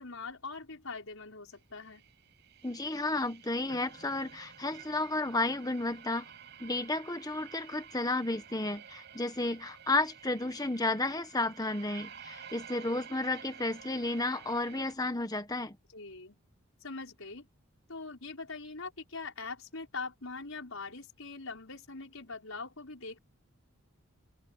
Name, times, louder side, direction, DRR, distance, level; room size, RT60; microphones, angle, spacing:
voice 1, 0.0-2.0 15.9-16.4 16.8-17.5 17.9-23.2, left 4 dB, 70° left, 5.7 m, -42 dB
sound 1, 1.8-14.9, right 8 dB, 50° right, 6.0 m, -51 dB
voice 2, 2.6-6.3 6.6-15.8, left 2 dB, 15° left, 1.4 m, -32 dB
open air
head